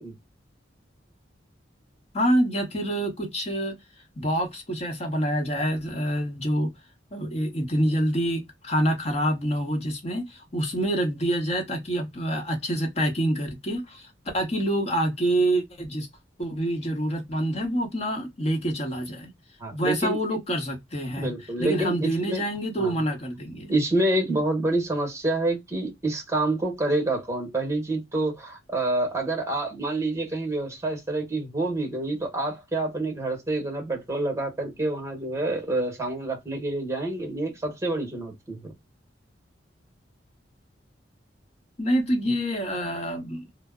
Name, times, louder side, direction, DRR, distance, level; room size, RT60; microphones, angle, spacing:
voice 1, 2.1-3.8 4.2-6.7 7.1-16.1 16.4-19.3 19.7-21.3 21.6-23.7 41.8-43.5, right 1 dB, 35° left, 0.9 m, -26 dB
voice 2, 19.6-20.2 21.2-22.4 22.8-22.9 23.7-38.7 42.3-42.4, right 2 dB, 15° right, 1.0 m, -27 dB
2.0 x 2.0 x 3.5 m
head